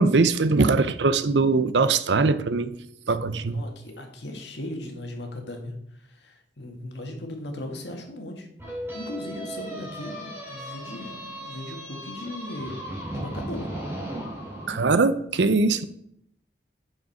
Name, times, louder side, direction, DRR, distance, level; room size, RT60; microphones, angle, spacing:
voice 1, 0.0-2.8 3.1-3.6 14.7-15.8, right 3 dB, 80° right, 0.6 m, -21 dB
voice 2, 3.5-8.5 8.9-12.8 13.1-13.7, left 1 dB, 70° left, 1.8 m, -37 dB
sound 1, 8.6-14.8, right 1 dB, 15° right, 2.8 m, -36 dB
7.2 x 6.6 x 5.4 m
head